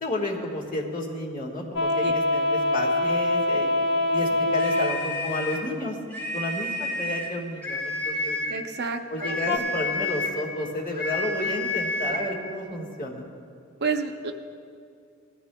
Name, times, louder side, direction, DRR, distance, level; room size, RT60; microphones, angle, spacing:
voice 1, 0.0-3.7 4.1-6.0 6.3-8.4 9.1-13.2, left 1 dB, 40° left, -1 dB, 1.5 m, -31 dB
sound 1, 1.8-4.9 9.5-9.6, left 2 dB, 60° left, 0.6 m, -24 dB
sound 2, 4.6-5.7 6.1-7.3 7.6-8.6 9.2-10.4 10.9-12.3, left 2 dB, 10° left, 2.1 m, -30 dB
voice 2, 8.5-9.4 13.8-14.3, right 5 dB, 55° right, 5 dB, 0.7 m, -29 dB
18.5 x 13.0 x 2.2 m, 2.4 s
head